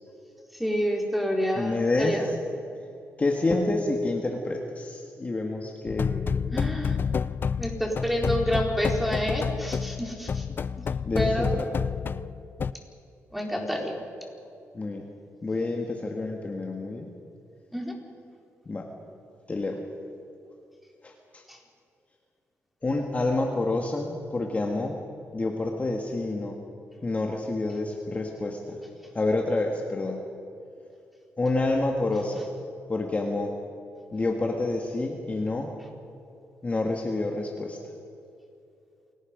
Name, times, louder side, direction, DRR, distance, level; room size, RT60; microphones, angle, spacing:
voice 1, 0.6-2.2 6.5-7.0 7.6-10.4 11.2-11.5 13.3-13.9 17.7-17.9 21.5-21.6, equal, ahead, 0 dB, 4.2 m, -28 dB
voice 2, 1.5-2.4 3.2-6.2 11.1-11.7 14.7-15.0 15.4-17.1 18.7-18.9 19.5-19.8 21.0-21.4 22.8-25.0 25.3-26.6 27.0-28.8 29.1-30.2 31.4-32.4 32.9-33.5 34.1-35.7 36.6-37.8, left 2 dB, 30° left, 1 dB, 1.9 m, -28 dB
sound 1, 5.9-12.7, left 6 dB, 45° left, 0.5 m, -29 dB
28.0 x 18.5 x 5.3 m, 2.6 s
cardioid pair, 90°, 5 cm